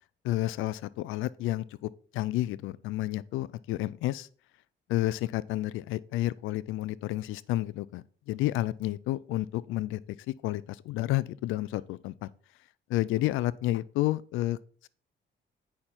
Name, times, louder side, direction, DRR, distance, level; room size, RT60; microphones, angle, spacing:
voice 1, 0.2-4.3 4.9-12.3 12.9-14.6, left 15 dB, 90° left, 0.4 m, -31 dB
8.6 x 5.7 x 4.4 m
cardioid pair, 90°, 20 cm